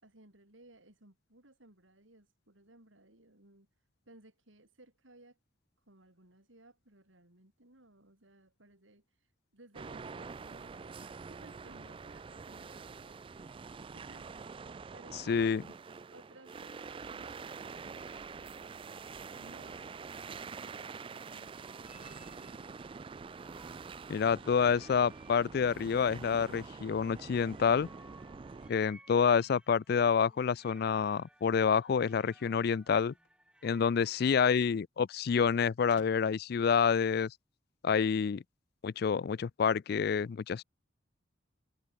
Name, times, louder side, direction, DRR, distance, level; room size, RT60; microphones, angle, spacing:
voice 1, 0.0-3.7 4.1-5.4 5.9-9.0 9.5-15.5 16.1-19.0 19.4-22.8 29.1-29.5, right 2 dB, 85° right, 5.7 m, -60 dB
sound 1, 9.7-28.7, right 5 dB, 25° right, 0.3 m, -46 dB
voice 2, 15.3-15.6 24.1-27.9 28.7-33.1 33.6-37.3 37.8-38.4 38.8-40.6, left 6 dB, 55° left, 0.3 m, -28 dB
sound 2, 21.4-34.7, right 1 dB, 5° right, 6.6 m, -62 dB
sound 3, 32.0-33.4 34.5-34.6 34.8-34.9 35.9-36.5, left 4 dB, 70° left, 2.2 m, -59 dB
head